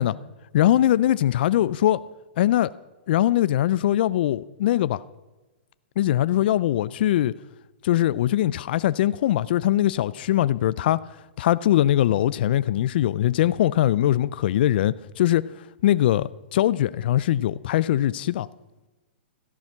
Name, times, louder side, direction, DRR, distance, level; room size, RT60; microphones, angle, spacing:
voice 1, 0.5-2.0 2.4-2.7 3.1-5.0 6.0-7.3 7.8-11.0 11.4-15.4 15.8-18.5, left 13 dB, 60° left, 0.4 m, -21 dB
13.5 x 10.5 x 5.8 m
hypercardioid pair, 125°, 6 cm